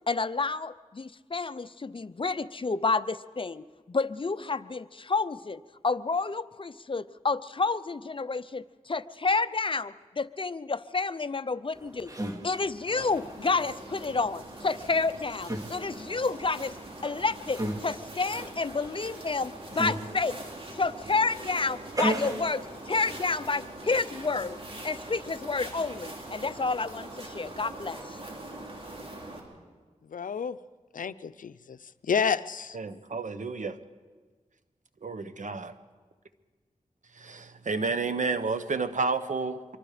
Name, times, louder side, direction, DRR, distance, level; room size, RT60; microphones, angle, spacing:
voice 1, 0.1-12.2 12.4-16.7 17.0-20.4 20.8-24.6 24.8-28.2, left 4 dB, 40° left, 14 dB, 0.7 m, -30 dB
sound 1, 11.7-23.2, right 1 dB, 25° right, 2.8 m, -38 dB
sound 2, 13.0-29.4, right 1 dB, 45° right, 4.7 m, -43 dB
voice 2, 30.1-30.5 30.9-31.8 32.0-32.8, left 6 dB, 80° left, 14 dB, 0.6 m, -29 dB
voice 3, 32.7-33.8 35.0-35.7 37.2-39.8, right 4 dB, 65° right, 10 dB, 1.3 m, -31 dB
25.5 x 23.5 x 5.1 m, 1.4 s
wide cardioid pair, 60°, 13 cm